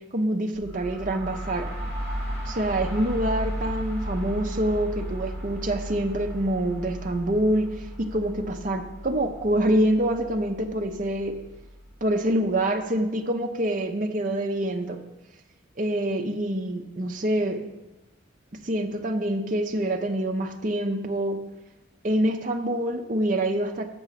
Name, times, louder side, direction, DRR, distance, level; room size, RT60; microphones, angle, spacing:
voice 1, 0.1-1.7 2.5-7.7 8.0-11.3 12.0-15.0 15.8-17.6 18.6-21.4 22.0-23.9, right 1 dB, 40° right, 4 dB, 0.7 m, -26 dB
sound 1, 0.5-12.2, equal, ahead, 3.3 m, -35 dB
6.8 x 6.1 x 5.7 m, 1.1 s
head